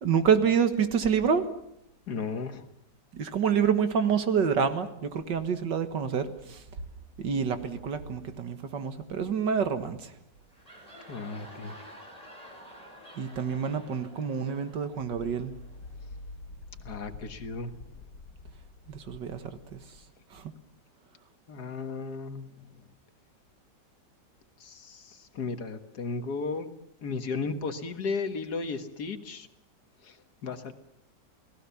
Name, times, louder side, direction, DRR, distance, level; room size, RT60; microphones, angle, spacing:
voice 1, 0.0-1.5 3.1-6.6 7.2-10.1 13.2-15.5 18.9-19.8 20.3-20.5, right 7 dB, 80° right, 9 dB, 2.2 m, -27 dB
voice 2, 2.1-2.7 11.1-11.8 16.8-17.7 21.5-22.5 24.6-26.7 27.0-29.5 30.0-30.7, left 4 dB, 65° left, 8 dB, 2.1 m, -35 dB
sound 1, 10.4-15.9, equal, 20° right, 5.0 m, -50 dB
sound 2, 15.0-20.1, left 3 dB, 85° left, 2.7 m, -47 dB
29.5 x 18.5 x 7.1 m, 0.75 s
omnidirectional pair, 1.9 m